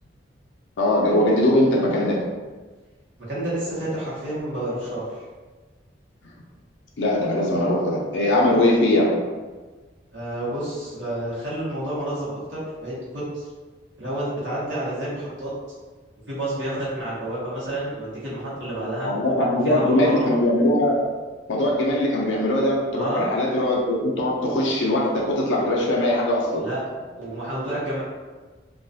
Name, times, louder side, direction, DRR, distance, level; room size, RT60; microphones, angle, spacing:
voice 1, 0.8-2.2 7.0-9.2 19.0-21.0 21.5-26.6, left 1 dB, 80° left, -3 dB, 0.4 m, -21 dB
voice 2, 3.3-5.2 10.1-13.5 14.0-15.5 16.3-19.1 19.6-20.3 22.9-23.3 26.6-26.8 27.2-28.0, right 1 dB, 85° right, -9 dB, 0.8 m, -29 dB
2.3 x 2.2 x 2.5 m, 1.3 s
head